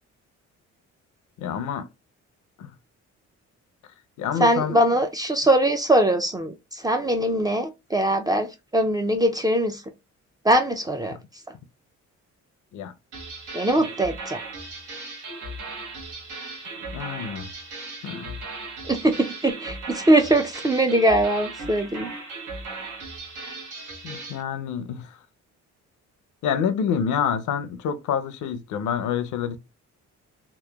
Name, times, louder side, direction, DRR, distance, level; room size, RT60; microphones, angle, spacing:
voice 1, 1.4-1.9 2.6-2.7 4.2-4.8 11.1-11.2 12.7-12.9 13.8-13.9 16.9-17.5 18.0-18.4 24.0-25.2 26.4-29.6, left 7 dB, 75° left, 0.5 m, -27 dB
voice 2, 4.4-9.8 10.4-11.2 13.5-14.4 18.9-22.1, right 1 dB, 15° right, 0.3 m, -22 dB
sound 1, 13.1-24.4, right 3 dB, 85° right, 0.9 m, -37 dB
2.9 x 2.1 x 2.2 m
cardioid pair, 90°, 30 cm